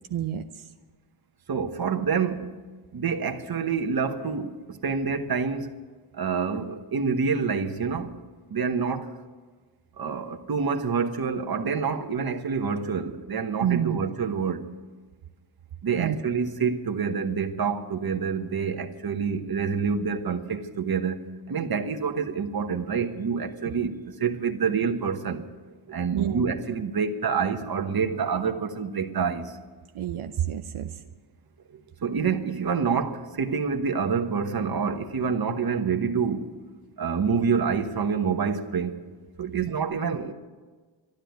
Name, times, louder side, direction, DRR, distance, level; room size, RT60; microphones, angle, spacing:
voice 1, 0.1-0.4 13.6-14.0 16.0-16.2 23.6-23.7 26.1-26.5 29.9-30.9 39.6-39.7, right 10 dB, 80° right, 0.8 m, -28 dB
voice 2, 1.5-2.5 2.9-5.7 6.1-8.1 8.5-9.1 10.0-14.7 15.8-25.4 25.9-29.6 31.7-36.5 37.0-38.9 39.4-40.3, right 6 dB, 45° right, 1.2 m, -27 dB
12.5 x 12.0 x 9.4 m
wide cardioid pair, 115°, 49 cm